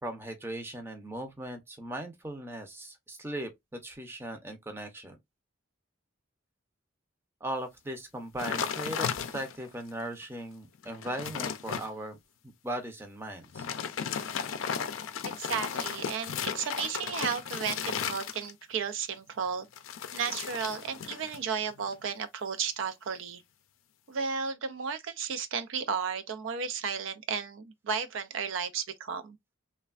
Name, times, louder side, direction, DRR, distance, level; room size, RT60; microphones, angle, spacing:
voice 1, 0.0-5.2 7.4-12.2 12.6-13.7, right 1 dB, 10° right, 0.5 m, -38 dB
sound 1, 8.4-9.7 10.2-10.3 10.7-11.9 13.4-18.7 19.7-21.4 21.7-22.1, left 7 dB, 80° left, 0.4 m, -35 dB
voice 2, 15.4-19.7 20.1-23.4 24.1-29.4, right 6 dB, 75° right, 0.4 m, -33 dB
3.2 x 2.2 x 2.3 m
head